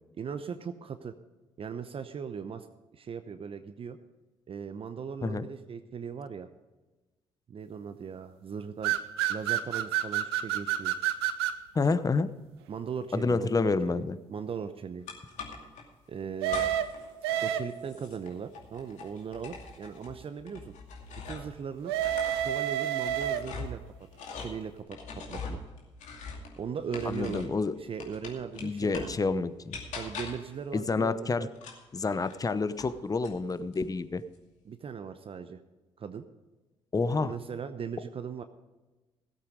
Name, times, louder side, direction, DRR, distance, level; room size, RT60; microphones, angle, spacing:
voice 1, 0.2-1.1 1.6-2.7 2.9-4.0 4.5-6.5 7.5-9.0 9.3-10.9 12.7-14.0 14.3-15.1 16.1-16.7 17.4-20.7 21.2-21.9 22.4-23.8 24.4-25.6 26.6-27.5 27.8-29.2 29.9-31.5 34.6-35.6 36.0-36.3 37.2-38.4, right 6 dB, 45° right, 9 dB, 0.8 m, -38 dB
sound 1, 8.8-11.6 16.4-18.0 21.8-23.7, right 11 dB, 85° right, 0.6 m, -29 dB
voice 2, 11.7-12.3 13.1-14.2 27.0-27.7 28.6-29.8 30.7-31.5 31.9-34.2 36.9-37.3, left 4 dB, 30° left, 14 dB, 0.8 m, -28 dB
sound 2, 15.1-15.8 16.4-17.0 17.3-21.6 21.9-27.6 28.0-29.2 29.7-30.5 31.5-32.9 33.2-33.8, left 4 dB, 65° left, 2.4 m, -42 dB
16.0 x 8.4 x 5.1 m, 1.2 s
hypercardioid pair, 45°, 13 cm